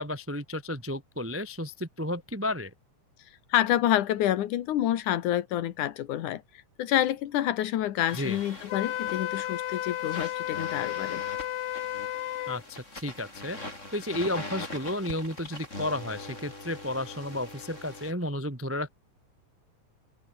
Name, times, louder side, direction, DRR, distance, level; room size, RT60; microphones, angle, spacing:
voice 1, 0.0-2.7 8.1-8.4 12.5-13.6 13.9-18.9, left 1 dB, 15° right, 0.4 m, -32 dB
voice 2, 3.5-6.4 6.8-11.2, left 12 dB, 85° left, 2.8 m, -28 dB
sound 1, 8.1-18.1, left 2 dB, 20° left, 6.8 m, -42 dB
Wind instrument woodwind instrument, 8.7-12.6, left 14 dB, 70° left, 1.5 m, -33 dB
open air
omnidirectional pair, 3.5 m